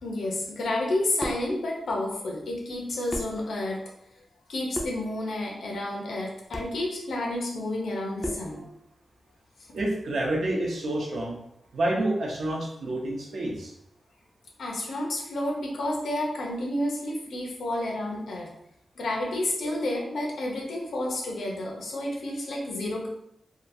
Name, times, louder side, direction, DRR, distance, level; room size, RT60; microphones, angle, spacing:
voice 1, 0.0-3.8 4.5-8.6 14.6-18.5 19.0-23.1, left 1 dB, 80° left, -1 dB, 0.7 m, -30 dB
sound 1, 1.2-1.5 2.7-2.8 3.1-3.4 4.7-5.1 6.5-6.8 8.2-8.6, equal, 5° right, 0.4 m, -34 dB
voice 2, 8.4-8.7 9.7-11.4 11.7-13.7, right 1 dB, 65° right, -1 dB, 0.6 m, -29 dB
2.8 x 2.3 x 2.6 m, 0.78 s
wide cardioid pair, 160°, 0 cm